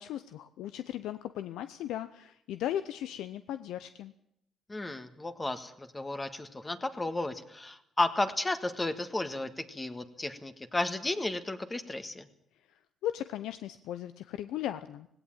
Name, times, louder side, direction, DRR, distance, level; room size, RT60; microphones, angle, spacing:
voice 1, 0.0-4.1 12.7-15.1, left 11 dB, 90° left, 12 dB, 0.7 m, -37 dB
voice 2, 4.7-12.3, left 2 dB, 20° left, 9 dB, 1.7 m, -33 dB
18.0 x 17.0 x 8.9 m, 0.75 s
cardioid pair, 90°, 0 cm